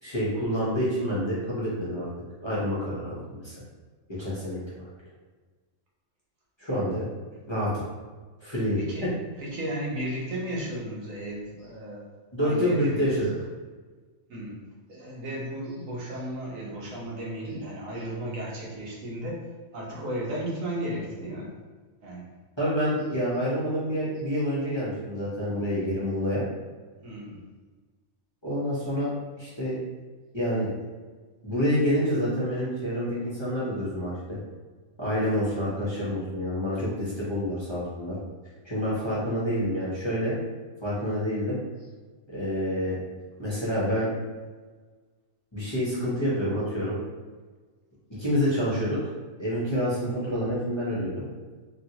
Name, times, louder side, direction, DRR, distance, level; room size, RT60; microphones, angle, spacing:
voice 1, 0.0-2.1 2.4-3.5 4.2-4.6 6.6-7.1 7.5-7.7 8.4-9.1 12.3-13.3 22.6-26.4 28.4-29.1 29.4-29.8 30.3-30.8 31.4-34.4 35.0-38.1 38.6-40.3 40.8-41.6 42.3-43.0 43.4-44.1 45.5-46.9 48.1-49.0 49.4-51.2, equal, 25° left, -9 dB, 0.8 m, -27 dB
voice 2, 8.7-9.1 9.4-12.1 12.4-13.2 14.3-19.5 19.7-21.5 22.0-22.3 27.0-27.4 38.8-38.9, right 1 dB, 80° right, -4 dB, 1.2 m, -34 dB
3.0 x 2.7 x 2.8 m, 1.4 s
omnidirectional pair, 1.4 m